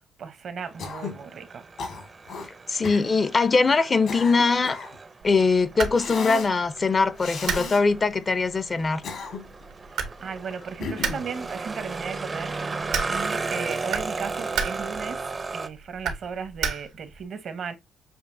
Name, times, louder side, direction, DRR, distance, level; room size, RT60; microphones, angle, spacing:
voice 1, 0.2-1.6 9.9-15.3 15.5-17.7, right 6 dB, 60° right, 0.8 m, -36 dB
sound 1, 0.6-15.7, right 3 dB, 30° right, 0.5 m, -35 dB
Cough, 0.8-1.2 1.8-2.5 2.8-3.1 3.8-5.0 5.9-6.5 7.2-7.8 8.8-9.6 10.8-11.3, left 5 dB, 70° left, 1.6 m, -35 dB
voice 2, 2.7-4.8 5.2-9.0, left 4 dB, 35° left, 0.5 m, -22 dB
sound 2, 5.2-17.2, right 6 dB, 85° right, 1.0 m, -35 dB
6.3 x 2.6 x 2.5 m
cardioid pair, 90°, 0 cm